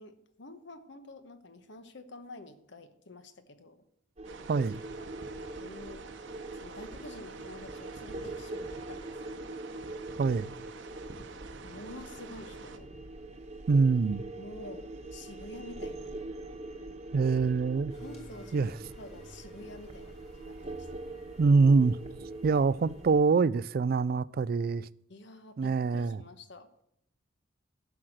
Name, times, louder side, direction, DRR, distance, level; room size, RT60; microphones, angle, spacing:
voice 1, 0.0-3.8 5.0-6.1 6.5-9.6 11.6-12.9 14.4-16.1 18.0-20.9 25.1-26.7, left 2 dB, 65° left, 1.1 m, -49 dB
sound 1, 4.2-23.2, right 2 dB, 35° right, 1.1 m, -43 dB
sound 2, 4.2-12.8, right 4 dB, 65° right, 0.9 m, -49 dB
voice 2, 4.5-4.8 10.2-10.5 13.7-14.2 17.1-17.9 18.5-18.7 21.4-22.0 22.4-24.9 25.6-26.2, right 4 dB, 50° right, 0.3 m, -25 dB
sound 3, 17.9-23.4, equal, 30° left, 2.6 m, -55 dB
11.5 x 6.2 x 7.8 m
head